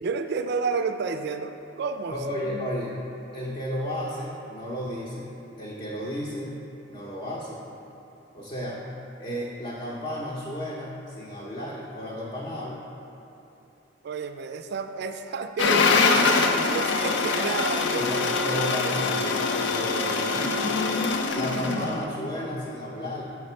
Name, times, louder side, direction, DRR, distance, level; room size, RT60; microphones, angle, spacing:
voice 1, 0.0-2.2 14.0-16.2 16.7-18.3, right 4 dB, 60° right, 8 dB, 0.3 m, -31 dB
voice 2, 2.1-3.0 3.3-5.3 5.6-6.6 6.9-7.6 8.3-8.8 9.2-12.8 18.0-20.6 21.3-23.3, equal, 30° left, -6 dB, 0.7 m, -33 dB
sound 1, 15.6-22.0, left 4 dB, 65° left, 0.5 m, -24 dB
6.1 x 5.9 x 4.3 m, 2.9 s
head